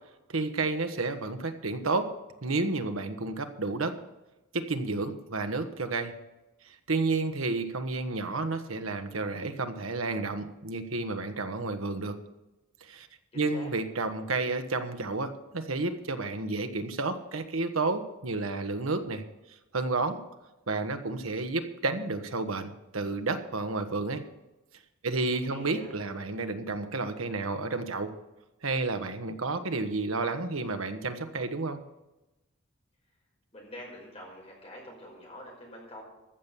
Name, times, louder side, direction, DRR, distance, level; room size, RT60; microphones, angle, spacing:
voice 1, 0.3-2.1 2.4-4.0 4.5-6.1 6.6-12.2 12.8-13.1 13.3-19.2 19.7-20.2 20.7-24.2 25.0-28.1 28.6-31.8, right 3 dB, 85° right, 7 dB, 1.2 m, -31 dB
voice 2, 13.3-13.7 25.3-25.9 33.5-36.0, equal, 30° left, -2 dB, 5.2 m, -46 dB
14.5 x 6.9 x 7.3 m, 1.0 s
head